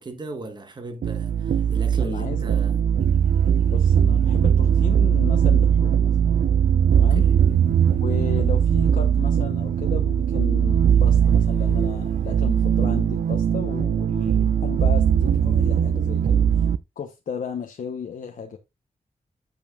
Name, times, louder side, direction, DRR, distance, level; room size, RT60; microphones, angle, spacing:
voice 1, 0.0-2.8 6.9-7.4, right 2 dB, 35° right, 1.3 m, -37 dB
sound 1, 1.0-16.8, right 8 dB, 75° right, 0.4 m, -20 dB
voice 2, 2.0-2.5 3.6-6.1 6.9-7.3 8.0-16.4 17.0-18.6, left 6 dB, 75° left, 0.9 m, -34 dB
14.0 x 5.4 x 2.4 m
wide cardioid pair, 150°, 14 cm